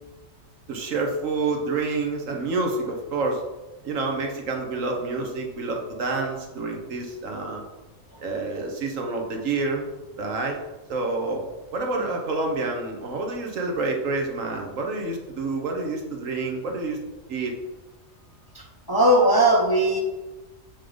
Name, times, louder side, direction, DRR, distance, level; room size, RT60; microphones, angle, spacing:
voice 1, 0.7-3.4 3.8-7.6 8.2-9.8 10.2-10.6 10.9-11.4 11.7-17.0 17.3-17.6, right 3 dB, 70° right, 2 dB, 1.4 m, -28 dB
voice 2, 18.9-20.0, right 1 dB, 20° left, -1 dB, 0.7 m, -18 dB
7.3 x 3.7 x 5.1 m, 1.1 s
omnidirectional pair, 1.4 m